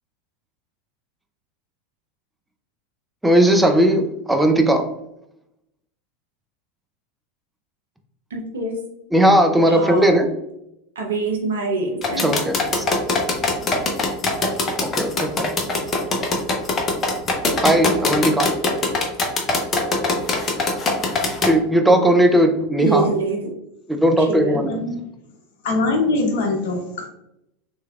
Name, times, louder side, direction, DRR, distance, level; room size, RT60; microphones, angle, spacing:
voice 1, 3.2-4.8 9.1-10.3 12.2-12.8 15.0-15.5 17.6-18.5 21.5-23.1 23.9-24.8, right 1 dB, 5° right, 5 dB, 0.5 m, -17 dB
voice 2, 8.3-8.8 9.7-10.1 11.0-12.3 22.8-23.4 24.2-24.6, right 3 dB, 75° right, 1 dB, 0.8 m, -25 dB
sound 1, 12.0-21.5, left 3 dB, 30° left, 0.7 m, -21 dB
voice 3, 24.5-25.0 25.6-27.1, left 2 dB, 65° left, 2 dB, 0.8 m, -22 dB
3.4 x 3.2 x 2.3 m, 0.81 s
figure-of-eight pair, 85°, 0 cm